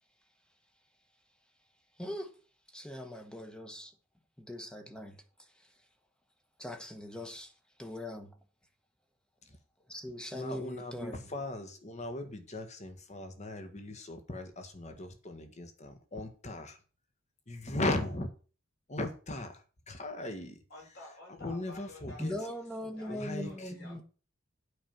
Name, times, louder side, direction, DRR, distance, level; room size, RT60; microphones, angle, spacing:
voice 1, 2.0-2.3 2.7-3.9 4.4-5.2 6.6-7.5 7.8-8.3 9.9-11.2 22.2-24.0, left 1 dB, 5° left, 1.1 m, -40 dB
voice 2, 10.3-16.8 17.5-18.3 18.9-20.6 21.4-22.3 23.1-23.7, left 2 dB, 35° left, 1.5 m, -38 dB
voice 3, 20.7-22.6 22.9-24.0, left 2 dB, 55° left, 5.1 m, -51 dB
8.7 x 5.3 x 7.2 m
head